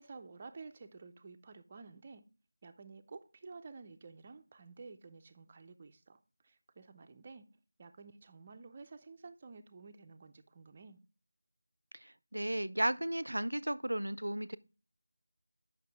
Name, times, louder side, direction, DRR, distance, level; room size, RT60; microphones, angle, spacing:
voice 1, 0.0-2.2 2.6-7.5 7.8-11.0, right 4 dB, 25° right, 0.5 m, -52 dB
voice 2, 12.0-14.6, right 1 dB, 90° right, 0.4 m, -34 dB
7.5 x 5.8 x 3.4 m
figure-of-eight pair, 170°, 0 cm